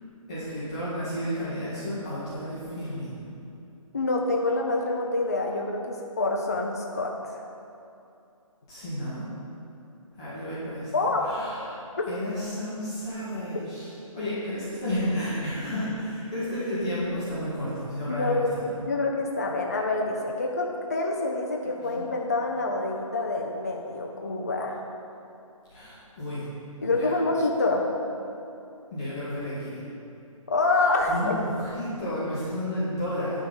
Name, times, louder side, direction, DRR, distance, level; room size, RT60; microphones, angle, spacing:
voice 1, 0.3-3.3 8.7-9.3 10.2-11.8 12.1-18.8 21.8-22.0 25.7-26.5 26.9-27.1 28.9-29.9 30.8-33.4, equal, 10° left, -11 dB, 0.9 m, -32 dB
voice 2, 3.9-7.1 10.9-11.2 18.1-18.6 18.9-24.8 26.8-27.9 30.5-31.1, left 2 dB, 30° left, 0 dB, 0.5 m, -26 dB
11.0 x 3.7 x 6.9 m, 2.7 s
hypercardioid pair, 180°, 18 cm